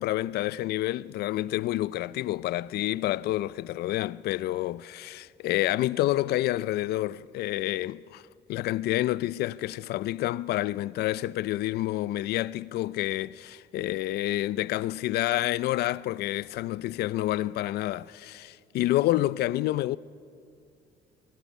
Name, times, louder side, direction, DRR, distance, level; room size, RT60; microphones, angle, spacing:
voice 1, 0.0-8.2 8.5-20.0, left 15 dB, 70° left, 0.5 m, -28 dB
25.0 x 23.5 x 5.4 m
cardioid pair, 110°, 17 cm